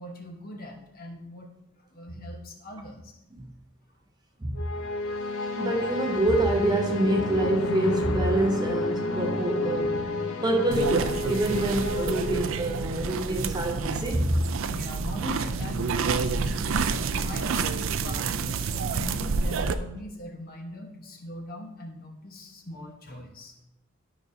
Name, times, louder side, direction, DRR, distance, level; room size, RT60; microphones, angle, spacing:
voice 1, 0.0-1.5 1.8-3.1 14.7-23.5, left 1 dB, 45° left, 1.1 m, -41 dB
sound 1, 4.6-13.0, left 2 dB, 80° left, 0.7 m, -30 dB
voice 2, 5.6-10.0 10.4-14.4, right 1 dB, 20° right, 0.6 m, -26 dB
sound 2, 10.7-19.7, right 5 dB, 65° right, 0.4 m, -28 dB
12.0 x 5.2 x 2.7 m
head